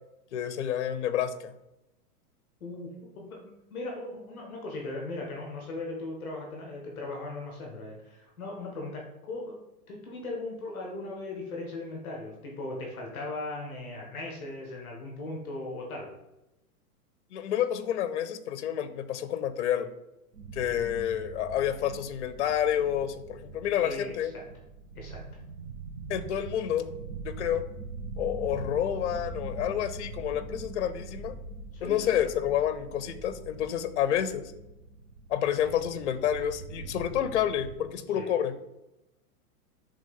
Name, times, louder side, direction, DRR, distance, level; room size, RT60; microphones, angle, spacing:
voice 1, 0.3-1.5 17.3-19.9 20.5-24.3 26.1-27.0 27.2-27.6 28.2-31.4 31.8-34.5 35.3-38.5, left 10 dB, 50° left, 12 dB, 0.5 m, -29 dB
voice 2, 2.6-9.6 9.9-16.1 23.8-24.4 25.0-25.2 31.7-32.2 38.1-38.3, left 2 dB, 5° left, -1 dB, 0.6 m, -38 dB
sound 1, 20.3-37.7, right 3 dB, 70° right, 1.0 m, -42 dB
5.4 x 3.4 x 5.3 m, 0.91 s
supercardioid pair, 175°, 46 cm